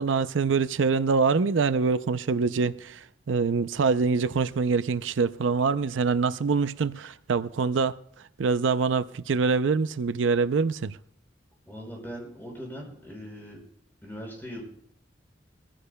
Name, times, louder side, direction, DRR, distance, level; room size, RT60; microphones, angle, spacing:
voice 1, 0.0-8.0 8.4-11.0, right 4 dB, 90° right, 0.5 m, -25 dB
voice 2, 11.7-13.6 14.0-14.6, equal, 10° left, 5.6 m, -40 dB
23.5 x 15.0 x 2.3 m
head